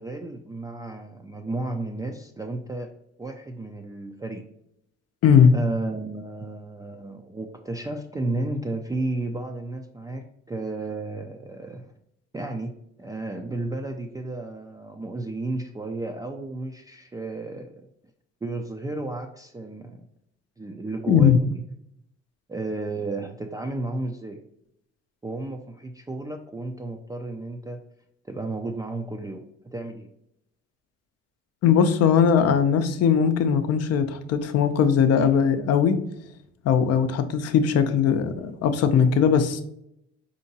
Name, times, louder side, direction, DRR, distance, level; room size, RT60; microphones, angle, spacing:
voice 1, 0.0-2.9 3.2-4.5 5.5-11.9 12.3-17.9 18.4-20.0 20.6-21.6 22.5-24.4 25.2-27.8 28.3-29.5 29.7-30.1, right 2 dB, 10° right, 2 dB, 0.4 m, -33 dB
voice 2, 5.2-5.5 21.1-21.4 31.6-36.0 36.6-39.6, left 7 dB, 55° left, 10 dB, 0.6 m, -19 dB
4.3 x 2.8 x 2.7 m, 0.78 s
hypercardioid pair, 60°, 30 cm